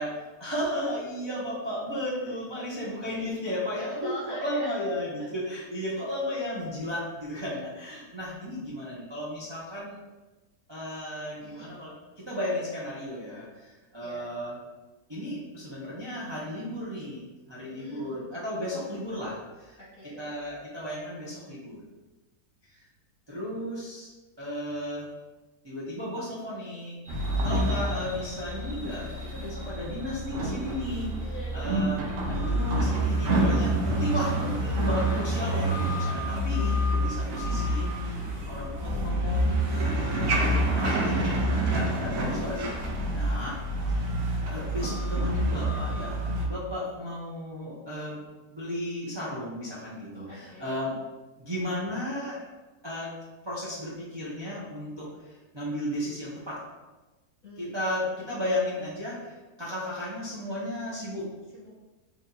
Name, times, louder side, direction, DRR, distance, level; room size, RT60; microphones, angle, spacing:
voice 1, 0.0-10.0 10.7-14.6 15.1-17.2 17.5-19.8 20.0-21.8 22.7-22.8 23.3-24.1 24.4-25.1 25.6-27.0 27.4-32.0 32.3-38.2 38.5-43.5 44.5-48.2 48.5-51.0 51.4-52.5 52.8-53.1 53.4-56.6 57.6-61.3, left 1 dB, 35° right, -9 dB, 0.4 m, -34 dB
voice 2, 3.8-4.7 5.2-5.3 11.4-11.7 14.0-14.3 17.6-18.2 19.8-20.2 27.7-27.9 29.2-29.5 31.2-31.7 34.3-34.6 44.0-44.5 50.3-50.9 57.4-58.1 61.5-61.7, equal, 40° left, -7 dB, 1.3 m, -44 dB
sound 1, 27.0-34.2, equal, 20° right, 0.8 m, -50 dB
sound 2, 27.1-46.5, right 1 dB, 65° right, 0.9 m, -28 dB
3.2 x 2.8 x 3.7 m, 1.2 s
omnidirectional pair, 1.6 m